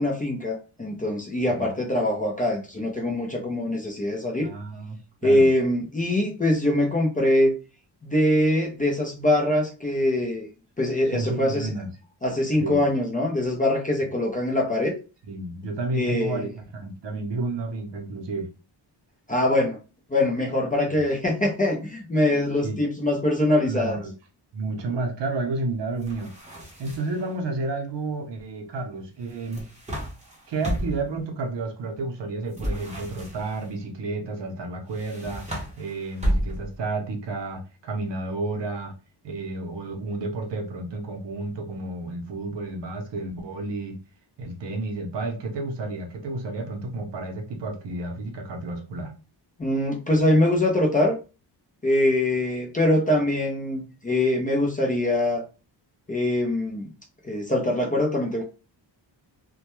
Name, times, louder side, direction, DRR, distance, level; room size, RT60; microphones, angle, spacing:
voice 1, 0.0-4.5 5.2-7.6 8.0-10.5 10.8-11.7 12.2-15.0 15.9-16.5 19.3-19.8 20.1-24.0 49.6-51.2 51.8-55.4 56.1-56.9 57.2-58.4, left 1 dB, 20° left, 0.4 m, -23 dB
voice 2, 4.4-5.0 5.2-5.5 11.1-11.9 12.6-12.8 15.2-18.5 20.9-21.0 22.6-22.8 23.7-24.1 24.5-26.3 26.8-29.6 30.5-35.5 35.8-38.9 39.2-44.0 44.4-49.1, right 3 dB, 65° right, 0.7 m, -31 dB
sound 1, 26.0-27.3 29.3-31.1 32.5-33.7 34.9-36.8, equal, 15° right, 0.7 m, -32 dB
2.2 x 2.2 x 2.9 m
wide cardioid pair, 140°, 45 cm